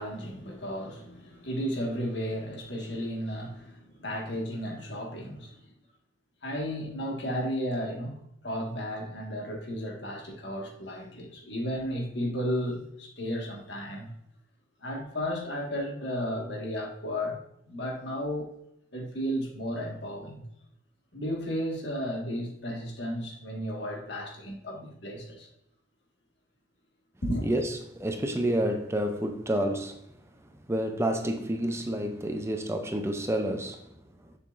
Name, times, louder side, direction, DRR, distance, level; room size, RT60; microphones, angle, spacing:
voice 1, 0.0-5.6 6.4-8.2 8.4-14.1 14.8-18.5 18.9-20.4 21.1-25.5 27.2-27.5, equal, 65° left, 1.8 m, -33 dB
voice 2, 27.4-30.0 30.7-33.8, right 1 dB, 15° right, 0.6 m, -29 dB
6.9 x 6.6 x 2.6 m
head